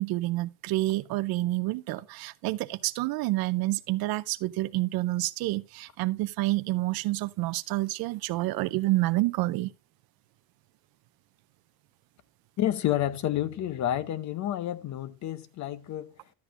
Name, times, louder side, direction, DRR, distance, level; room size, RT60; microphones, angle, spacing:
voice 1, 0.0-9.7, right 18 dB, 55° right, 0.5 m, -28 dB
voice 2, 12.6-16.1, left 12 dB, 40° left, 0.7 m, -29 dB
11.5 x 8.0 x 2.5 m
cardioid pair, 150°, 44 cm